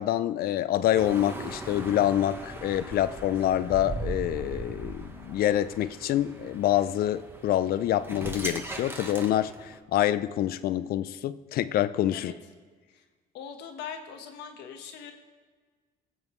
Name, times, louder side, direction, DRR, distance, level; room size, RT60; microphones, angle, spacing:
voice 1, 0.0-12.3, left 12 dB, 65° left, 15 dB, 0.5 m, -26 dB
sound 1, 0.9-9.8, right 2 dB, 15° right, 1.2 m, -39 dB
voice 2, 13.3-15.1, left 7 dB, 85° left, 5 dB, 1.3 m, -41 dB
21.5 x 7.3 x 3.2 m, 1.5 s
cardioid pair, 110°, 17 cm